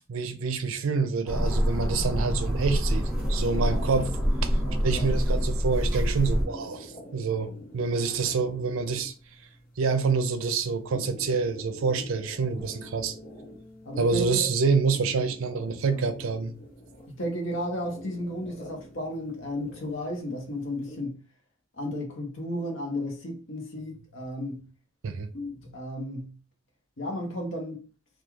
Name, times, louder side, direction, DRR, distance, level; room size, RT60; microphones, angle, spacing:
voice 1, 0.1-4.1 4.4-4.6 4.8-9.1 9.8-13.2 14.0-16.5 25.0-25.3, right 4 dB, 80° right, 0.4 m, -27 dB
sound 1, 1.3-6.4, equal, 5° right, 0.6 m, -26 dB
sound 2, 3.0-21.0, equal, 45° left, 0.6 m, -47 dB
voice 2, 3.5-3.9 4.6-5.1 12.0-12.1 13.8-14.5 15.9-16.0 17.1-21.2 21.7-24.7 25.3-26.4 27.0-27.8, left 1 dB, 65° left, 0.8 m, -34 dB
Bass guitar, 12.6-18.8, left 2 dB, 30° right, 0.9 m, -54 dB
2.3 x 2.3 x 3.0 m
head